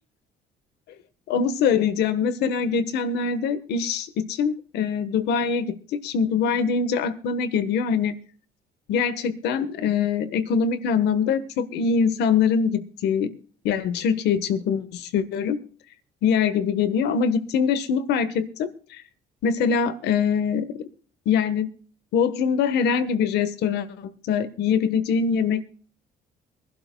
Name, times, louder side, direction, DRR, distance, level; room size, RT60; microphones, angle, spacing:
voice 1, 1.3-8.2 8.9-13.3 13.6-15.6 16.2-19.0 19.4-20.9 21.2-21.7 22.1-25.6, left 6 dB, 80° left, 13 dB, 1.3 m, -23 dB
24.0 x 12.0 x 2.3 m, 0.44 s
cardioid pair, 110°, 17 cm